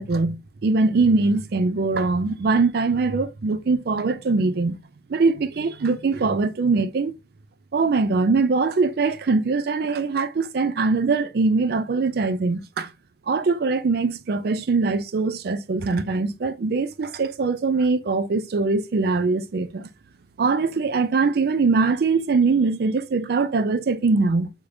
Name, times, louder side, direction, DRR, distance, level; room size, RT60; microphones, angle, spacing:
voice 1, 0.0-4.8 5.1-7.1 7.7-12.9 13.3-19.9 20.4-24.5, right 4 dB, 60° right, 0.4 m, -22 dB
3.6 x 3.3 x 2.6 m
head